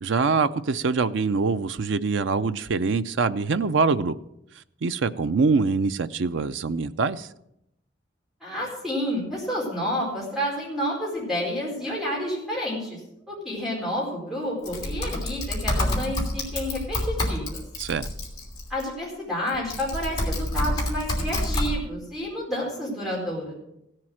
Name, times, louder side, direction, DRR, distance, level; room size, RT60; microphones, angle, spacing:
voice 1, 0.0-4.2 4.8-7.3 17.8-18.1, right 4 dB, 80° right, 0.5 m, -24 dB
voice 2, 8.4-13.0 13.3-17.6 18.7-23.5, equal, ahead, 4.4 m, -30 dB
Typing, 14.6-18.8 19.5-21.7, left 1 dB, 20° left, 2.9 m, -28 dB
16.0 x 7.6 x 6.3 m
head